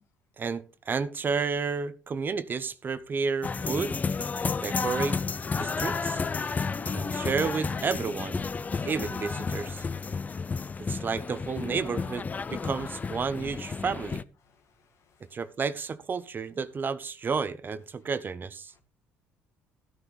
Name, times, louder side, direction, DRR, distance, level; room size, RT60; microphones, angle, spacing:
voice 1, 0.4-4.0 4.6-5.2 5.6-6.2 6.9-8.4 8.8-9.8 10.9-14.2 15.3-18.7, right 5 dB, 35° right, 0.7 m, -31 dB
sound 1, 3.4-14.2, left 5 dB, 30° left, 0.5 m, -32 dB
voice 2, 14.4-15.5 18.0-18.1 18.7-18.8, left 5 dB, 60° left, 1.9 m, -66 dB
13.5 x 9.9 x 3.2 m
supercardioid pair, 75°, 5 cm